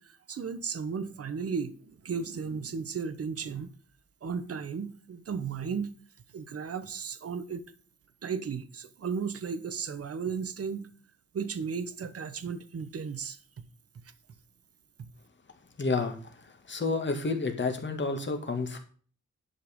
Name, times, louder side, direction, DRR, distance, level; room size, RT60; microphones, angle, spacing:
voice 1, 0.0-3.7 4.2-5.9 6.3-7.6 8.2-10.9 11.3-13.4, right 6 dB, 55° right, 1.0 m, -35 dB
voice 2, 15.8-16.2 16.7-18.8, left 3 dB, 40° left, 2.1 m, -29 dB
11.0 x 5.5 x 5.3 m
wide cardioid pair, 160°, 29 cm